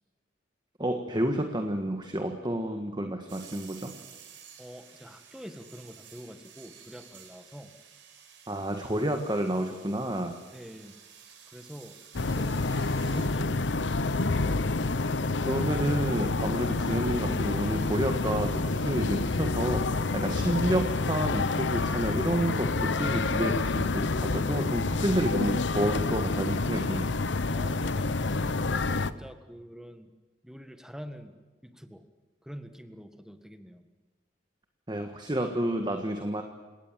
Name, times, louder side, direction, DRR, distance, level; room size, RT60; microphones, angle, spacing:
voice 1, 0.8-3.9 8.5-10.4 15.5-27.1 34.9-36.4, right 1 dB, 25° right, 5 dB, 1.6 m, -30 dB
sound 1, 3.3-13.3, right 8 dB, 80° right, 4.4 m, -52 dB
voice 2, 4.6-7.7 10.5-12.0 12.3-12.7 13.1-14.3 27.5-28.5 29.0-30.1 30.4-32.0 32.4-33.9, equal, 5° right, 9 dB, 1.6 m, -46 dB
sound 2, 12.1-29.1, left 3 dB, 75° left, 0.9 m, -28 dB
29.5 x 18.0 x 7.6 m, 1.3 s
head